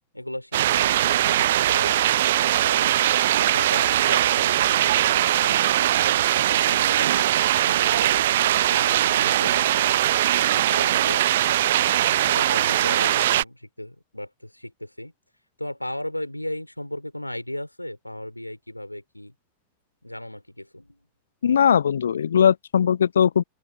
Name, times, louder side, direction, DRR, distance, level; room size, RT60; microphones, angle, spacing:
voice 1, 0.1-2.0 2.6-3.0 3.2-7.3 7.6-10.0 10.5-11.5 11.8-15.1 15.6-19.3 20.0-21.0, left 1 dB, 85° left, 2.9 m, -37 dB
sound 1, 0.5-13.4, right 13 dB, 60° right, 0.5 m, -21 dB
voice 2, 21.4-23.4, left 8 dB, 65° left, 0.4 m, -19 dB
open air
figure-of-eight pair, 90°, 0 cm